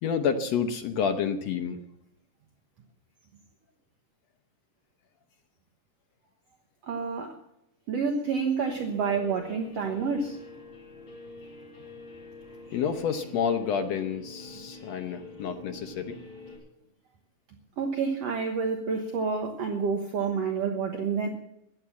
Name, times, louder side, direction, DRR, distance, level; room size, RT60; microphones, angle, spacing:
voice 1, 0.0-1.8 12.7-16.2, left 7 dB, 65° left, 7 dB, 1.9 m, -29 dB
voice 2, 6.8-7.3 7.9-10.4 17.8-21.3, right 5 dB, 60° right, 3 dB, 2.2 m, -28 dB
Guitar, 8.7-16.6, left 2 dB, 40° left, 5.8 m, -46 dB
15.5 x 11.0 x 7.1 m, 0.81 s
omnidirectional pair, 3.5 m